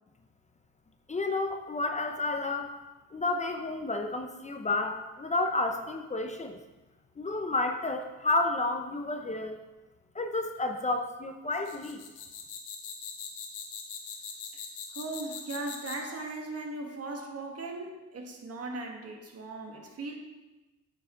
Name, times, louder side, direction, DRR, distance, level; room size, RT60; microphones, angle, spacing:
voice 1, 1.1-2.7 3.1-6.6 7.2-9.6 10.1-12.0, left 2 dB, 25° left, 5 dB, 0.8 m, -31 dB
sound 1, 11.5-16.2, left 6 dB, 75° left, 1.5 m, -41 dB
voice 2, 14.9-20.1, right 2 dB, 50° right, 2 dB, 1.7 m, -38 dB
8.9 x 6.8 x 3.8 m, 1.1 s
cardioid pair, 90°, 30 cm